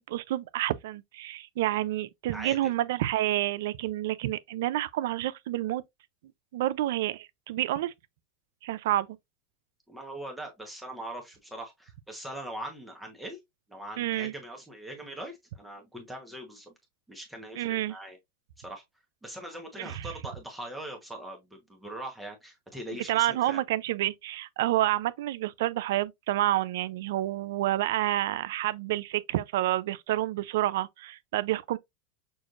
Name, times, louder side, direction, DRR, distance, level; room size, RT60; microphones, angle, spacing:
voice 1, 0.0-5.8 6.5-7.9 8.6-9.1 14.0-14.3 17.6-17.9 19.8-20.1 23.1-31.8, right 14 dB, 75° right, 0.4 m, -29 dB
voice 2, 9.9-13.4 13.7-16.7 17.1-18.2 18.6-18.8 19.2-23.6, right 1 dB, 5° right, 1.0 m, -41 dB
6.2 x 2.5 x 2.4 m
supercardioid pair, 135°, 0 cm